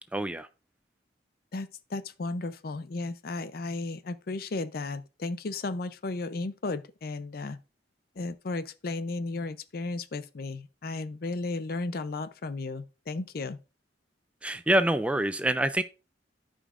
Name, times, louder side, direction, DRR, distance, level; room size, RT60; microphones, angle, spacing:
voice 1, 0.1-0.5 14.4-15.8, right 1 dB, 5° right, 0.3 m, -26 dB
voice 2, 1.5-7.6 8.2-13.6, left 3 dB, 55° left, 0.5 m, -34 dB
13.5 x 5.2 x 2.5 m
head